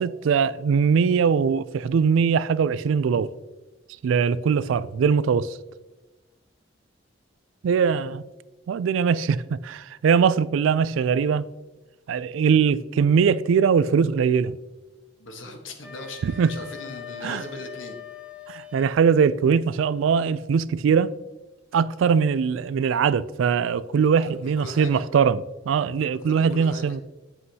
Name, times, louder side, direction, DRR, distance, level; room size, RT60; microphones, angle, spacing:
voice 1, 0.0-3.3 4.0-5.6 7.6-8.2 8.7-11.4 12.1-14.6 16.2-16.5 17.2-17.4 18.5-21.1 21.7-27.0, right 6 dB, 85° right, 0.3 m, -21 dB
voice 2, 15.2-18.0 24.3-25.0 26.2-27.0, left 2 dB, 85° left, 1.3 m, -39 dB
Wind instrument woodwind instrument, 15.8-19.0, left 7 dB, 5° right, 0.7 m, -41 dB
7.8 x 7.6 x 2.8 m
head